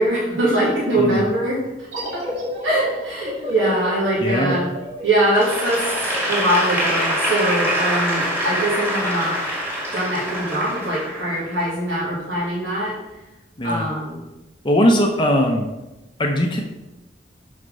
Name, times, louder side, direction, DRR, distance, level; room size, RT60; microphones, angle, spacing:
voice 1, 0.0-2.2 2.6-4.7 5.0-5.9 6.2-9.4 9.9-12.9 13.6-14.2, right 1 dB, 80° right, -7 dB, 2.1 m, -22 dB
sound 1, 1.9-7.2, left 1 dB, 35° right, 2.0 m, -32 dB
voice 2, 4.2-4.6 13.6-13.9 14.6-15.7 16.2-16.6, equal, 25° left, 2 dB, 0.7 m, -19 dB
Applause / Crowd, 5.3-11.6, equal, 10° right, 2.0 m, -24 dB
6.3 x 5.8 x 5.4 m, 1.0 s
head